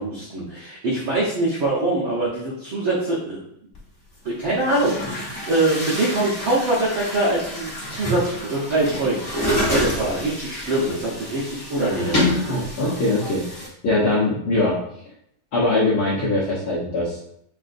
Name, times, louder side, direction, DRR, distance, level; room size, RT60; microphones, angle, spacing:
voice 1, 0.0-3.4 4.2-12.6, right 2 dB, 80° right, -6 dB, 1.1 m, -24 dB
Chatter / Gurgling / Tap, 3.7-3.8 4.6-13.7, left 1 dB, 15° left, 0.8 m, -28 dB
voice 2, 11.8-14.8 15.5-17.2, left 2 dB, 65° left, -8 dB, 1.4 m, -23 dB
7.9 x 2.6 x 2.5 m, 0.71 s
omnidirectional pair, 3.7 m